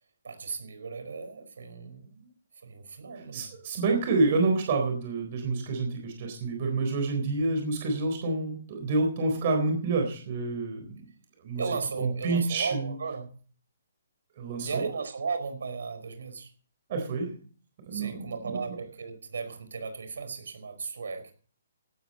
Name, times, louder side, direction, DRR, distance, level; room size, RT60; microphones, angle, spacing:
voice 1, 0.2-2.3 2.6-3.5 11.6-13.3 14.6-16.5 17.9-21.3, right 5 dB, 70° right, 8 dB, 4.8 m, -36 dB
voice 2, 3.3-11.0 11.4-11.6 12.0-12.9 14.4-14.9 16.9-17.3 17.9-18.7, right 3 dB, 25° right, 3 dB, 4.0 m, -28 dB
16.0 x 13.0 x 4.2 m, 0.41 s
hypercardioid pair, 180°, 0 cm